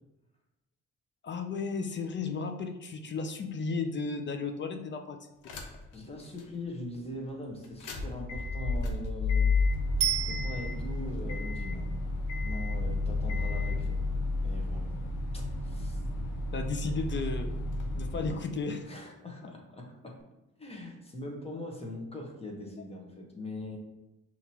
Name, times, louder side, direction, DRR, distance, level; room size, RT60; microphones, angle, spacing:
voice 1, 1.2-5.2 16.5-17.5 17.9-18.9 19.4-19.5, left 4 dB, 40° left, 6 dB, 0.4 m, -34 dB
sound 1, 5.4-6.0 6.4-6.5 7.6-18.3, left 3 dB, 80° left, 0.8 m, -31 dB
voice 2, 5.9-9.5 10.1-11.9 12.4-14.0 14.4-14.9 15.3-16.0 16.9-17.0 18.1-18.5 18.9-20.2 20.6-23.8, left 1 dB, 20° left, 0 dB, 1.1 m, -42 dB
Bicycle bell, 10.0-11.1 20.2-20.3, right 12 dB, 65° right, 0.6 m, -32 dB
5.8 x 2.9 x 2.8 m, 0.95 s
cardioid pair, 90°, 30 cm